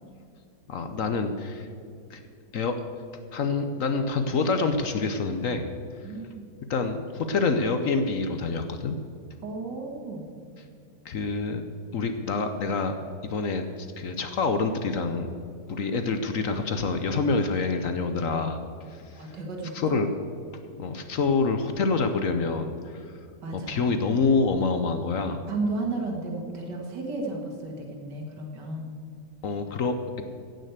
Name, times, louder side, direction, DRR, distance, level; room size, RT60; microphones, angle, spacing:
voice 1, 0.7-1.7 2.1-2.2 2.5-2.7 3.3-5.7 6.0-6.1 6.7-9.0 11.0-11.6 11.9-12.9 13.2-15.3 15.7-18.6 18.9-19.3 19.7-20.1 20.8-23.2 23.5-25.4 29.4-30.0, left 4 dB, 60° left, 7 dB, 1.0 m, -27 dB
voice 2, 6.0-6.5 9.4-10.3 19.2-20.0 23.4-23.8 25.5-28.9, right 3 dB, 80° right, 1 dB, 2.5 m, -33 dB
15.5 x 6.6 x 8.1 m, 2.3 s
omnidirectional pair, 1.9 m